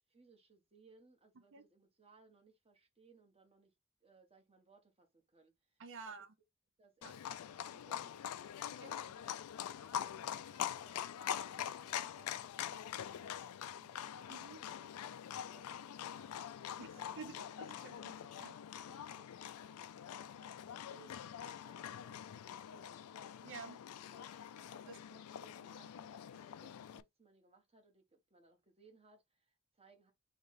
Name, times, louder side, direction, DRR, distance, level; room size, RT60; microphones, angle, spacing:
voice 1, 0.1-6.1 6.8-9.2 9.6-15.8 16.1-17.6 18.8-23.3 24.0-30.1, right 4 dB, 25° right, 1.1 m, -66 dB
voice 2, 5.8-6.3 7.0-7.1 8.8-8.9 14.3-14.6 16.8-17.3 17.7-18.5 23.4-23.8 24.9-25.0, right 4 dB, 60° right, 0.6 m, -50 dB
Livestock farm animals working animals, 7.0-27.0, left 9 dB, 80° left, 0.4 m, -44 dB
3.2 x 3.1 x 4.0 m
head